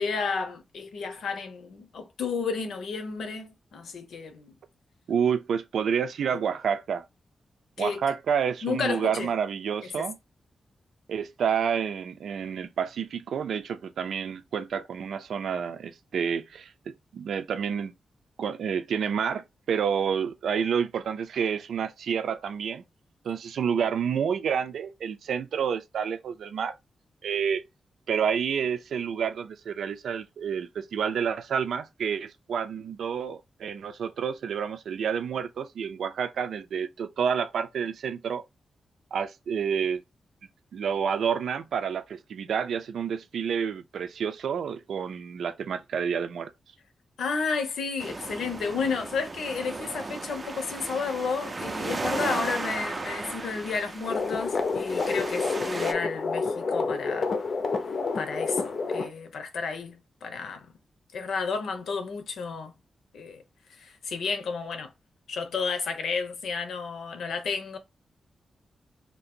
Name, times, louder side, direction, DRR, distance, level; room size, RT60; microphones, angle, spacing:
voice 1, 0.0-4.5 7.8-8.0 8.6-9.3 9.8-10.1 47.2-57.3 58.1-60.7 61.1-62.7 63.1-63.4 63.7-64.9 65.3-67.8, left 5 dB, 90° left, 0.9 m, -32 dB
voice 2, 5.1-7.0 7.8-10.2 11.1-17.9 18.4-22.9 23.2-26.7 27.2-27.6 28.1-38.4 39.1-40.0 40.7-46.5, right 7 dB, 85° right, 0.5 m, -29 dB
sound 1, 48.0-55.9, right 3 dB, 25° right, 0.4 m, -35 dB
sound 2, 54.0-59.1, left 4 dB, 50° left, 0.6 m, -29 dB
3.0 x 2.8 x 4.3 m
wide cardioid pair, 150°, 0 cm